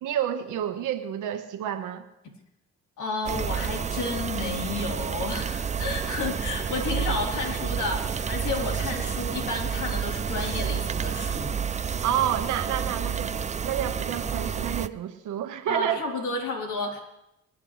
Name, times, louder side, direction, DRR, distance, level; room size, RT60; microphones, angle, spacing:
voice 1, 0.0-2.0 12.0-16.0, right 10 dB, 85° right, 7 dB, 1.4 m, -29 dB
voice 2, 3.0-11.6 15.7-17.0, left 3 dB, 75° left, -1 dB, 3.8 m, -31 dB
sound 1, 3.3-14.9, right 7 dB, 25° right, 0.4 m, -30 dB
26.5 x 9.7 x 3.3 m, 0.87 s
cardioid pair, 90°, 30 cm